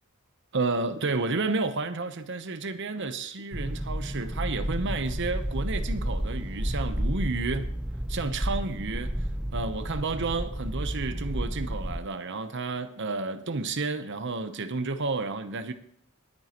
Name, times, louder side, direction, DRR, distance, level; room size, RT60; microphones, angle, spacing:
voice 1, 0.5-7.7 8.1-15.7, right 3 dB, 55° right, 0.9 m, -31 dB
sound 1, 3.5-12.0, equal, 5° right, 0.4 m, -31 dB
20.0 x 9.2 x 3.0 m
head